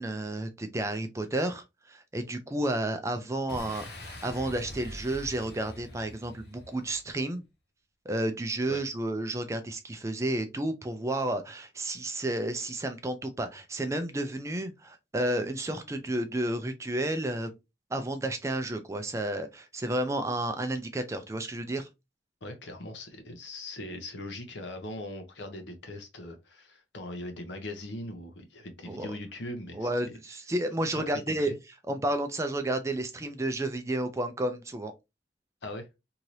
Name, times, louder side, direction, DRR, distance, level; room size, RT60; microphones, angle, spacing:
voice 1, 0.0-7.4 8.1-17.5 17.9-21.9 28.9-29.1 29.7-31.5 31.9-34.9, right 1 dB, 15° right, 0.4 m, -31 dB
Boom, 3.5-7.1, left 1 dB, 60° left, 1.0 m, -44 dB
voice 2, 22.4-30.1 31.1-31.5 35.6-35.9, left 1 dB, 80° left, 0.8 m, -40 dB
2.8 x 2.6 x 3.0 m
head